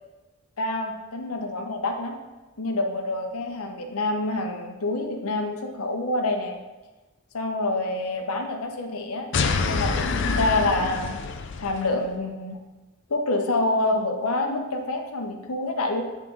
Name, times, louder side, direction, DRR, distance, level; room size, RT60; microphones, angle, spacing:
voice 1, 0.6-2.2 2.6-6.6 7.3-9.3 9.7-11.2 11.6-12.6 13.1-16.0, left 2 dB, 85° left, 4 dB, 0.8 m, -27 dB
sound 1, 9.3-11.9, left 4 dB, 55° left, 0.4 m, -26 dB
8.5 x 3.7 x 3.8 m, 1.2 s
head